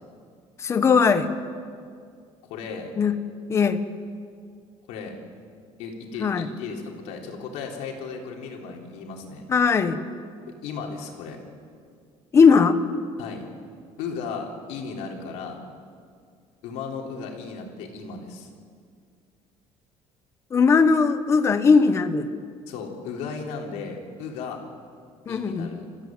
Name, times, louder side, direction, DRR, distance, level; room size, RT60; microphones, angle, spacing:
voice 1, 0.6-1.3 3.0-3.1 3.5-3.8 6.2-6.5 9.5-10.0 12.3-12.8 20.5-22.3 25.3-25.7, left 5 dB, 25° left, 9 dB, 1.0 m, -19 dB
voice 2, 2.5-2.9 4.9-5.1 5.8-9.4 10.6-11.4 13.2-13.5 14.0-15.6 16.6-18.5 22.7-24.6 25.3-25.8, left 5 dB, 90° left, 1 dB, 3.8 m, -35 dB
28.5 x 15.0 x 7.8 m, 2.2 s
cardioid pair, 175°, 12 cm